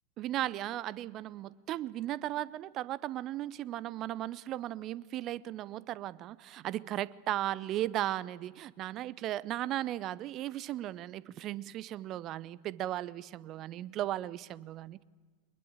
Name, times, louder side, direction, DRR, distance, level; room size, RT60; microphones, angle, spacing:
voice 1, 0.2-15.0, right 13 dB, 35° right, 21 dB, 0.7 m, -36 dB
23.0 x 21.5 x 8.9 m, 1.4 s
figure-of-eight pair, 90°, 0 cm